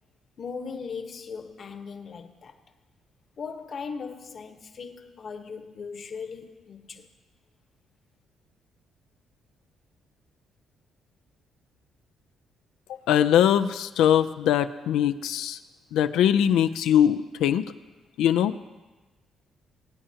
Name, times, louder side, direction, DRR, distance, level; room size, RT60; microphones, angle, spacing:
voice 1, 0.4-2.5 3.4-7.1, left 5 dB, 50° left, 1.1 m, -38 dB
voice 2, 13.1-15.6 15.9-17.6 18.2-18.5, left 10 dB, 90° left, 0.5 m, -21 dB
22.5 x 8.9 x 2.9 m
cardioid pair, 90°, 0 cm